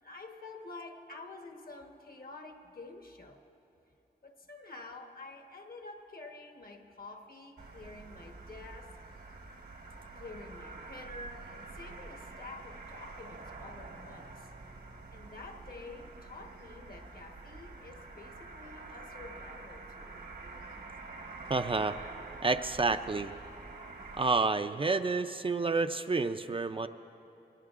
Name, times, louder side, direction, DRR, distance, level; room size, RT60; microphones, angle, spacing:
voice 1, 0.0-3.4 4.2-9.0 10.1-14.5 15.1-20.3, left 3 dB, 60° left, 4 dB, 1.2 m, -48 dB
sound 1, 7.6-24.3, right 3 dB, 75° right, 1.2 m, -47 dB
voice 2, 21.5-22.0 22.4-23.3 24.2-26.9, right 3 dB, 30° right, 9 dB, 0.3 m, -29 dB
25.0 x 18.5 x 2.5 m, 3.0 s
wide cardioid pair, 100°, 17 cm